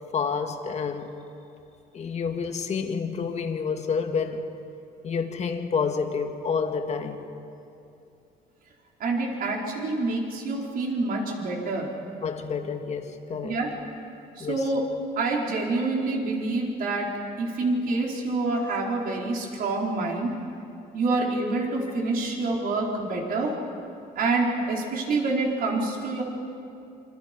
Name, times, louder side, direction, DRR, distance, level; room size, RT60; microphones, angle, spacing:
voice 1, 0.1-1.1 1.9-4.5 5.0-7.2 12.2-13.6 14.4-14.7 24.9-25.0, left 5 dB, 40° left, 4 dB, 2.2 m, -29 dB
voice 2, 9.0-11.9 13.4-13.7 14.4-14.8 15.2-20.3 20.9-23.6 24.1-26.2, right 3 dB, 60° right, -1 dB, 4.7 m, -27 dB
27.5 x 26.5 x 5.4 m, 2.7 s
cardioid pair, 110°, 17 cm